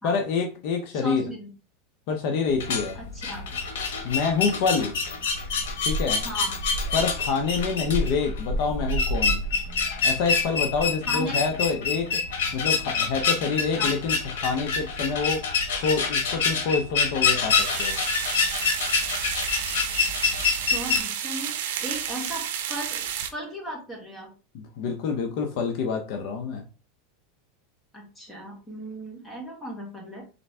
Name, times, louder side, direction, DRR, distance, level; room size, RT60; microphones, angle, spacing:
voice 1, 0.0-1.3 2.1-3.0 4.0-5.0 5.8-6.2 6.9-9.4 10.0-12.2 12.5-15.5 15.8-18.0 24.5-26.6, left 5 dB, 55° left, 4 dB, 0.7 m, -27 dB
voice 2, 0.9-1.5 2.9-3.4 6.2-6.6 11.0-11.4 13.8-13.9 20.6-24.3 27.9-30.2, right 1 dB, 10° left, -1 dB, 1.6 m, -36 dB
sound 1, 2.5-21.0, left 4 dB, 85° left, 1.2 m, -26 dB
sound 2, 17.5-23.3, right 9 dB, 70° right, 0.6 m, -31 dB
3.9 x 3.3 x 3.3 m, 0.34 s
supercardioid pair, 150°, 0 cm